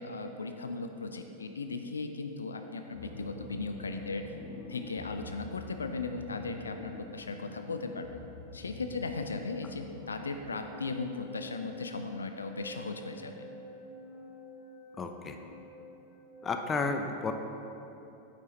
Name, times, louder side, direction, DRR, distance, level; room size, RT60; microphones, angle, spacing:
voice 1, 0.0-4.3 4.7-8.2 8.5-13.5, left 3 dB, 75° left, 7 dB, 0.4 m, -37 dB
sound 1, 2.9-16.8, left 2 dB, 40° left, 1.1 m, -48 dB
voice 2, 15.0-15.4 16.4-17.3, left 4 dB, 20° left, 5 dB, 0.6 m, -32 dB
9.3 x 9.1 x 2.8 m, 3.0 s
figure-of-eight pair, 90°, 0 cm